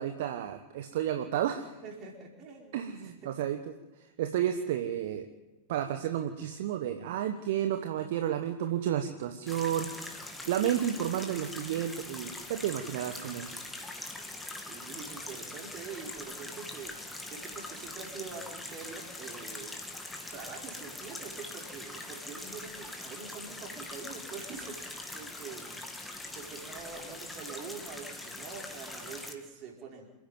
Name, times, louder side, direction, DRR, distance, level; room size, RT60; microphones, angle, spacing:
voice 1, 0.0-1.8 2.7-3.6 4.0-5.2 5.7-13.6, right 10 dB, 55° right, 6 dB, 1.3 m, -32 dB
voice 2, 1.8-3.3 14.7-25.8 26.3-30.1, right 5 dB, 35° right, 0 dB, 5.0 m, -45 dB
sound 1, 9.5-29.3, left 2 dB, 5° left, 2.4 m, -42 dB
27.5 x 10.0 x 9.3 m, 1.1 s
figure-of-eight pair, 90°, 0 cm